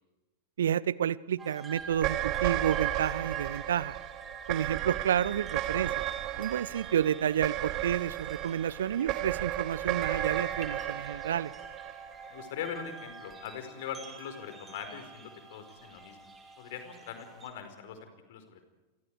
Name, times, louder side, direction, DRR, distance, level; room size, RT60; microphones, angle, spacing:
voice 1, 0.6-4.0 4.5-6.0 6.4-11.5, right 9 dB, 65° right, 22 dB, 0.7 m, -30 dB
sound 1, 1.4-17.5, right 4 dB, 20° right, 5.4 m, -46 dB
sound 2, 1.9-12.4, right 15 dB, 40° right, 1.1 m, -34 dB
voice 2, 6.3-6.8 12.3-16.3 16.6-18.7, left 8 dB, 55° left, 8 dB, 4.9 m, -42 dB
29.5 x 24.5 x 4.9 m, 1.1 s
figure-of-eight pair, 90°, 0 cm